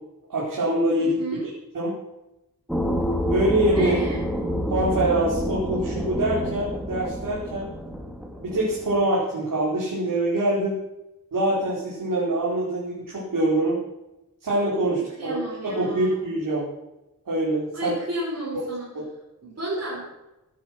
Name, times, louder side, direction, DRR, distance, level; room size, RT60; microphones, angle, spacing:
voice 1, 0.3-1.5 1.7-1.9 3.3-4.1 4.7-7.7 8.4-10.8 11.3-13.8 14.4-15.4 15.6-16.7 17.2-17.9 18.9-19.0, right 1 dB, 65° right, -7 dB, 4.9 m, -24 dB
voice 2, 1.0-1.5 3.7-4.3 15.2-16.3 17.7-18.9 19.4-20.0, right 1 dB, 40° right, -8 dB, 6.0 m, -32 dB
sound 1, 2.7-9.0, equal, ahead, 2.2 m, -28 dB
17.0 x 10.5 x 6.2 m, 0.95 s
wide cardioid pair, 115°, 35 cm